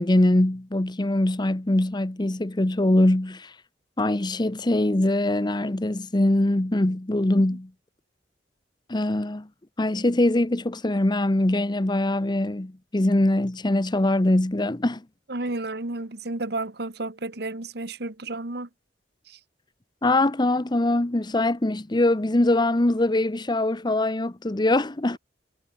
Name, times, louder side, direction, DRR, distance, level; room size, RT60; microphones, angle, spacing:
voice 1, 0.0-3.5 4.0-7.7 8.9-9.5 9.8-15.0 20.0-25.2, left 1 dB, 25° left, 0.9 m, -22 dB
voice 2, 15.3-18.7 19.3-19.4, right 2 dB, 65° right, 1.8 m, -32 dB
head